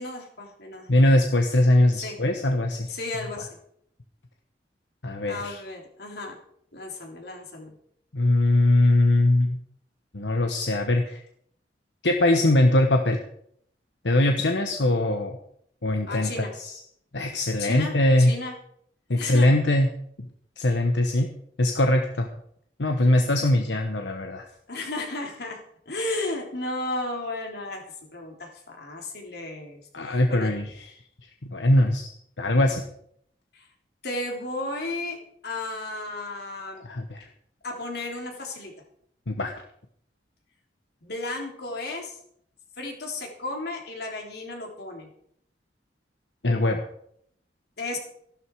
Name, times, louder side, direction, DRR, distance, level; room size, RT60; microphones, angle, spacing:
voice 1, 0.0-0.9 1.9-2.2 2.9-3.5 5.3-6.4 6.7-7.7 16.1-16.5 17.6-18.5 19.2-19.5 24.7-25.6 25.9-27.8 28.1-30.5 33.5-33.7 34.0-35.2 35.4-36.8 37.6-38.7 41.0-42.2 42.8-45.1 47.8-48.0, left 2 dB, 65° left, 1 dB, 3.6 m, -34 dB
voice 2, 0.9-2.9 5.0-5.6 8.1-9.6 10.1-11.2 12.0-13.2 14.0-15.4 15.8-16.7 17.1-18.3 19.1-19.9 20.6-21.3 21.6-22.3 22.8-24.4 29.9-30.9 31.5-32.1 32.4-32.8 36.8-37.2 39.3-39.5 46.4-46.9, left 1 dB, 85° left, 4 dB, 1.2 m, -21 dB
15.0 x 12.0 x 4.8 m, 0.67 s
head